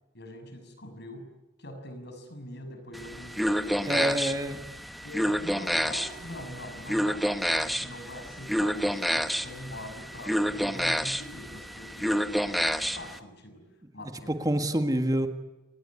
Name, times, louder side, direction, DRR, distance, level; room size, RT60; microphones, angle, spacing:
voice 1, 0.1-1.3 1.6-4.2 5.0-13.7 13.9-14.8, left 1 dB, 60° left, 6 dB, 6.4 m, -43 dB
sound 1, 2.9-13.2, equal, ahead, 0.9 m, -29 dB
voice 2, 3.9-4.6 14.3-15.3, right 1 dB, 20° right, 8 dB, 1.7 m, -26 dB
28.0 x 20.0 x 9.8 m, 1.0 s
head